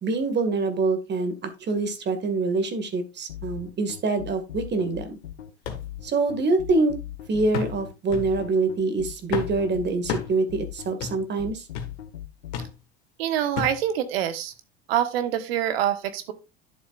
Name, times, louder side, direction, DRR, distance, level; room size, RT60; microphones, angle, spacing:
voice 1, 0.0-5.2 6.0-7.0 7.3-11.6, right 3 dB, 35° right, 8 dB, 2.1 m, -25 dB
sound 1, 3.3-12.7, left 12 dB, 80° left, 1.0 m, -38 dB
sound 2, 5.6-5.9 6.3-6.4 7.5-7.8 8.1-8.4 9.3-9.6 10.1-10.4 11.0-11.2 11.7-12.0 12.5-12.8 13.6-13.8 14.5-14.6, left 7 dB, 60° left, 1.9 m, -31 dB
voice 2, 13.2-14.5 14.9-16.3, right 11 dB, 65° right, 10 dB, 1.3 m, -25 dB
11.0 x 7.2 x 2.5 m, 0.27 s
figure-of-eight pair, 75°, 32 cm